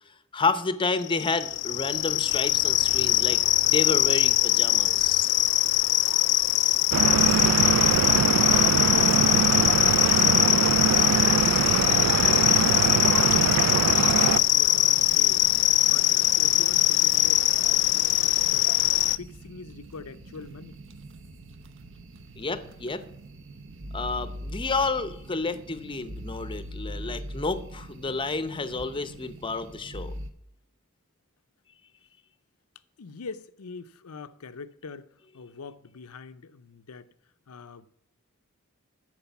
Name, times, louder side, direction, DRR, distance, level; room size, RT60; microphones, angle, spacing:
voice 1, 0.3-5.3 22.4-23.0 23.9-30.2, left 3 dB, 20° left, 0.7 m, -30 dB
sound 1, 1.0-19.2, left 17 dB, 55° left, 0.3 m, -22 dB
Stream / Boat Water vehicle, 6.9-14.4, right 8 dB, 75° right, 0.3 m, -24 dB
voice 2, 10.0-12.6 13.2-15.4 15.8-18.7 19.1-20.8 33.0-37.1 37.5-37.9, left 4 dB, 85° left, 0.6 m, -44 dB
sound 2, 12.7-30.3, right 1 dB, 60° right, 0.9 m, -43 dB
13.0 x 4.9 x 7.1 m
head